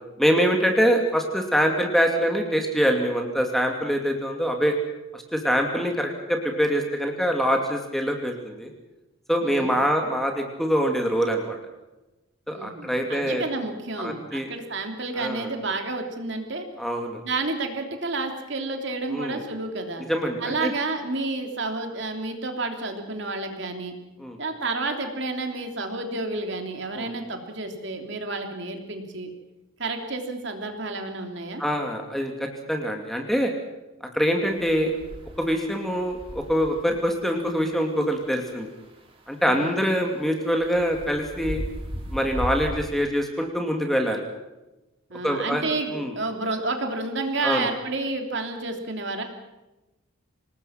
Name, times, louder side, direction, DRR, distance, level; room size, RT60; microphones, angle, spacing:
voice 1, 0.2-4.8 5.1-8.7 9.3-11.6 12.5-13.4 14.0-14.5 15.2-15.5 16.8-17.2 19.1-19.4 20.1-20.7 24.2-24.4 26.9-27.1 31.6-33.5 34.1-34.9 35.4-38.7 39.3-41.6 42.1-44.2 45.2-46.1 47.4-47.7, equal, ahead, 2 dB, 2.6 m, -24 dB
voice 2, 9.4-9.8 12.5-16.6 17.2-20.0 20.4-23.9 24.4-29.3 29.8-31.6 39.4-39.8 45.1-49.2, right 3 dB, 55° right, 4 dB, 3.2 m, -30 dB
sound 1, 34.4-42.7, equal, 25° right, 4.2 m, -38 dB
27.0 x 19.5 x 5.9 m, 1.0 s
head